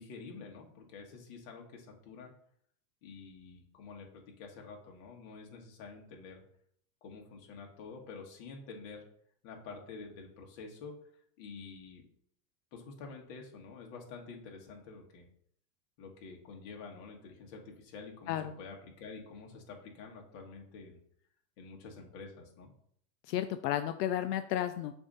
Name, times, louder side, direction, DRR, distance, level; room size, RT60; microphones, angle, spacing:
voice 1, 0.0-2.3 3.0-6.4 7.0-9.0 9.4-11.0 11.4-12.0 12.7-15.3 16.0-21.0 21.6-22.7, left 4 dB, 45° left, 1 dB, 1.5 m, -48 dB
voice 2, 23.3-24.9, left 12 dB, 85° left, 9 dB, 0.6 m, -32 dB
6.7 x 2.8 x 5.4 m, 0.65 s
supercardioid pair, 145°, 47 cm